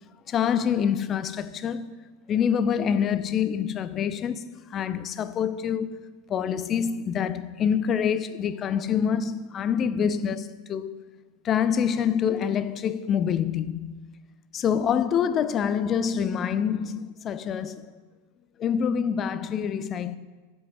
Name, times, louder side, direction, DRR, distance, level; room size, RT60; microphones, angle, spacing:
voice 1, 0.3-1.9 2.3-4.4 4.7-6.0 6.3-11.0 11.4-14.0 14.5-17.9 18.6-20.2, left 8 dB, 25° left, 0.5 m, -26 dB
7.7 x 6.2 x 7.6 m
figure-of-eight pair, 90°, 0 cm